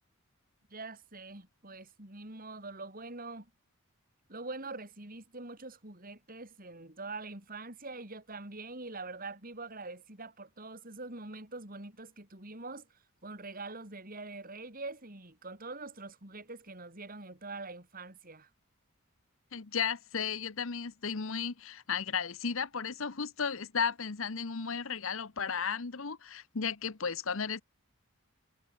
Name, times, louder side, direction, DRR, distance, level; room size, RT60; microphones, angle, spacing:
voice 1, 0.7-3.5 4.3-18.5, right 3 dB, 40° right, 5.0 m, -44 dB
voice 2, 19.5-27.6, left 6 dB, 65° left, 1.0 m, -34 dB
head